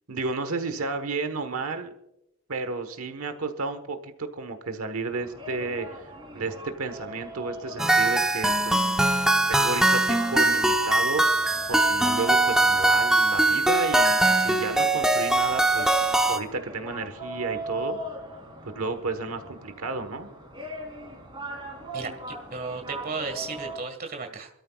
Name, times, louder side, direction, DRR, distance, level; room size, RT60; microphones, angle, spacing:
voice 1, 0.1-1.9 2.5-8.8 9.5-11.2 11.7-18.0 18.7-20.3, right 3 dB, 80° right, 8 dB, 1.4 m, -32 dB
sound 1, 5.1-23.8, right 1 dB, 20° right, 3.1 m, -40 dB
sound 2, 7.8-16.4, right 2 dB, 5° right, 0.9 m, -22 dB
voice 2, 22.5-24.5, right 4 dB, 40° right, 5 dB, 1.8 m, -34 dB
26.0 x 13.5 x 2.4 m, 0.85 s
head